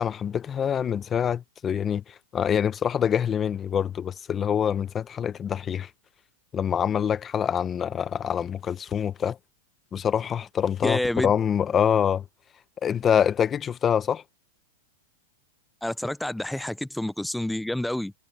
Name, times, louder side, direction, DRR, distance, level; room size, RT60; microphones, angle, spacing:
voice 1, 0.0-5.9 6.5-9.4 9.9-12.2 12.8-14.2, left 8 dB, 20° left, 0.8 m, -25 dB
voice 2, 10.8-11.3 15.8-18.1, left 1 dB, 5° left, 0.4 m, -28 dB
supercardioid pair, 145°, 0 cm